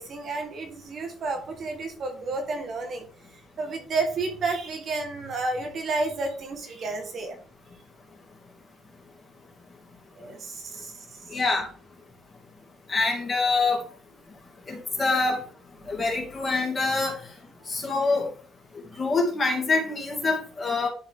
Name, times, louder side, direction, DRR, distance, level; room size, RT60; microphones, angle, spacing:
voice 1, 0.0-3.0 3.3-7.4 10.2-11.2, right 3 dB, 40° right, 4 dB, 1.5 m, -31 dB
voice 2, 11.3-11.7 12.9-13.8 14.7-15.4 15.9-17.1 17.7-18.3 19.0-20.9, left 3 dB, 25° left, 0 dB, 2.3 m, -25 dB
11.0 x 4.2 x 3.7 m, 0.42 s
cardioid pair, 170°, 0 cm